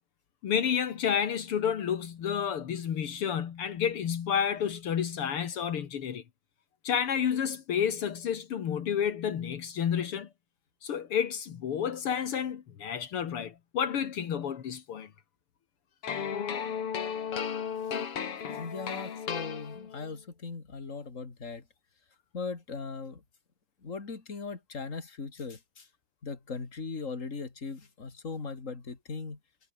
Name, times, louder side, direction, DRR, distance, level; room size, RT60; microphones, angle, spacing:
voice 1, 0.4-6.2 6.8-10.3 10.8-15.1, left 8 dB, 90° left, 1.2 m, -30 dB
sound 1, 16.0-20.1, left 7 dB, 45° left, 2.2 m, -34 dB
voice 2, 18.5-21.6 22.3-23.2 23.8-25.9 26.2-29.4, left 4 dB, 20° left, 2.2 m, -39 dB
omnidirectional pair, 5.1 m